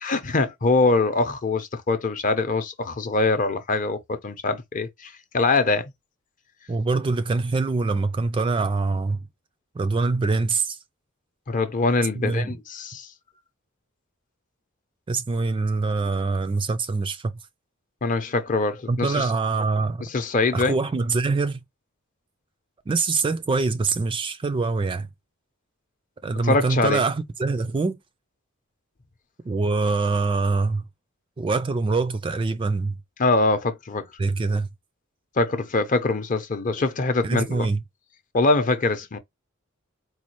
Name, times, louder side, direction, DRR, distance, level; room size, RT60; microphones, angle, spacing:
voice 1, 0.0-5.9 11.5-13.1 18.0-19.3 20.0-20.8 26.4-27.0 33.2-34.1 35.4-37.7 38.3-39.2, left 3 dB, 40° left, 0.6 m, -23 dB
voice 2, 6.7-9.2 9.8-10.8 12.2-12.6 15.1-17.3 18.9-20.0 20.5-21.6 22.9-25.1 26.2-28.0 29.4-30.8 31.4-33.0 34.2-34.7 37.2-37.8, right 3 dB, 25° right, 0.3 m, -24 dB
4.2 x 2.3 x 2.9 m
head